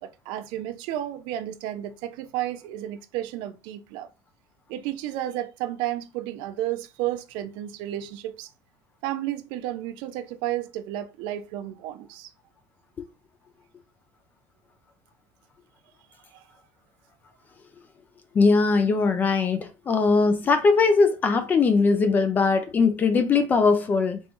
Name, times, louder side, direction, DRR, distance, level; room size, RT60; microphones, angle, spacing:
voice 1, 0.0-4.1 4.7-8.5 9.0-12.3, right 13 dB, 55° right, 0.4 m, -32 dB
voice 2, 18.3-24.2, left 4 dB, 20° left, 0.4 m, -20 dB
3.5 x 3.0 x 3.0 m
cardioid pair, 180°, 10 cm